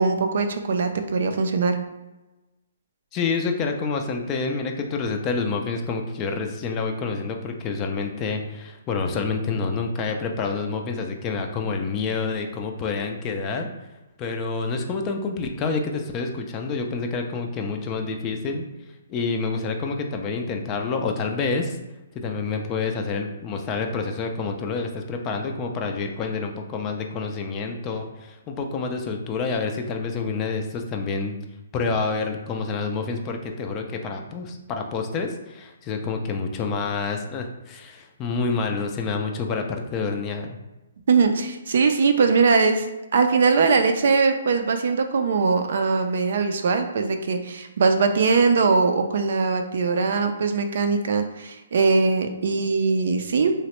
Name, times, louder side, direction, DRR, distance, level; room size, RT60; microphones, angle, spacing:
voice 1, 0.0-1.8 41.1-42.9 43.1-53.5, right 4 dB, 65° right, 7 dB, 0.4 m, -21 dB
voice 2, 3.1-13.7 14.2-18.6 19.1-21.8 22.1-31.4 31.7-40.6, left 4 dB, 25° left, 3 dB, 0.3 m, -28 dB
3.0 x 2.0 x 2.9 m, 1.0 s
hypercardioid pair, 145°, 0 cm